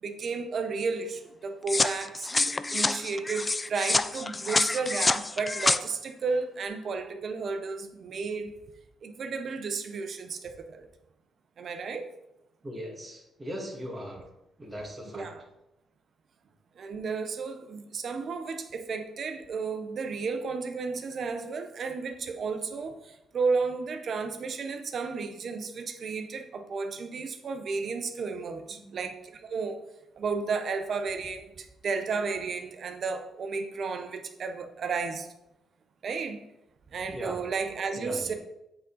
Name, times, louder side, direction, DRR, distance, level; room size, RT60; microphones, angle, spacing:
voice 1, 0.0-2.3 2.7-8.6 9.0-10.9 11.6-12.1 15.1-15.3 16.8-29.8 30.2-35.3 36.0-36.4 36.9-38.3, right 4 dB, 55° right, 7 dB, 0.8 m, -33 dB
sound 1, 1.7-5.8, left 3 dB, 20° left, 0.3 m, -27 dB
voice 2, 12.6-14.2 14.6-15.3 28.8-29.1 37.1-37.4 38.0-38.3, equal, 15° right, -2 dB, 1.7 m, -39 dB
8.0 x 3.9 x 3.9 m, 0.89 s
cardioid pair, 90°, 0 cm